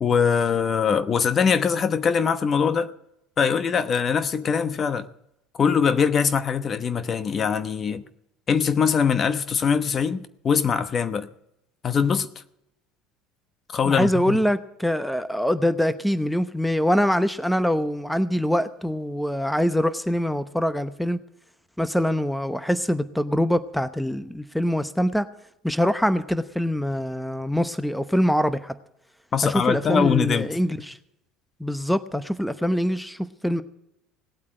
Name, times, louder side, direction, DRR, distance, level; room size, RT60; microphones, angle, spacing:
voice 1, 0.0-2.9 3.4-5.1 5.5-8.0 8.5-11.3 11.8-12.3 13.7-14.4 29.3-30.5, left 6 dB, 40° left, 1.0 m, -22 dB
voice 2, 13.8-21.2 21.8-25.3 25.6-28.7 29.4-31.0 31.6-33.6, equal, 5° left, 0.9 m, -24 dB
18.0 x 8.6 x 7.7 m
hypercardioid pair, 75°, 0 cm